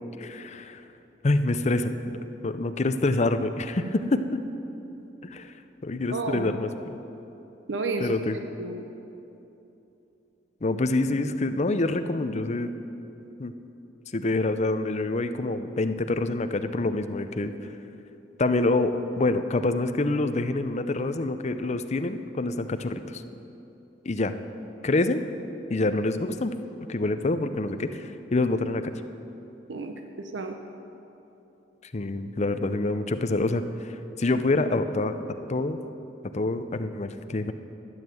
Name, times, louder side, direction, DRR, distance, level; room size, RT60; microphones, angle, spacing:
voice 1, 0.2-0.8 1.2-1.9 2.4-4.4 5.2-5.5 5.8-7.0 8.0-8.4 10.6-12.7 13.4-13.5 14.1-17.5 18.4-23.2 24.0-24.3 24.8-25.2 25.7-26.5 26.9-28.8 31.9-33.9 34.2-35.1 35.5-35.8 36.3-37.5, left 2 dB, 40° left, 9 dB, 0.6 m, -26 dB
voice 2, 6.1-6.5 7.7-8.8 29.7-30.5, right 3 dB, 80° right, 5 dB, 0.8 m, -32 dB
12.5 x 8.9 x 7.8 m, 2.9 s
head